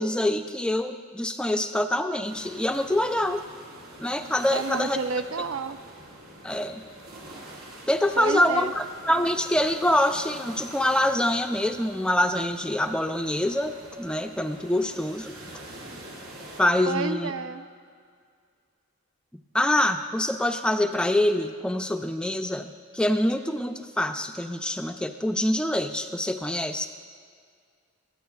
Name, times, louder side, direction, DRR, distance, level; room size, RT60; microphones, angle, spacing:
voice 1, 0.0-3.4 4.0-5.0 6.4-6.8 7.9-15.4 16.6-17.3 19.5-26.9, left 1 dB, 5° left, 7 dB, 0.4 m, -25 dB
sound 1, 2.2-16.6, right 1 dB, 90° right, 2.5 m, -45 dB
voice 2, 4.5-5.8 8.2-8.7 16.9-17.7, right 4 dB, 65° right, 10 dB, 0.4 m, -30 dB
24.0 x 8.7 x 2.3 m, 2.1 s
head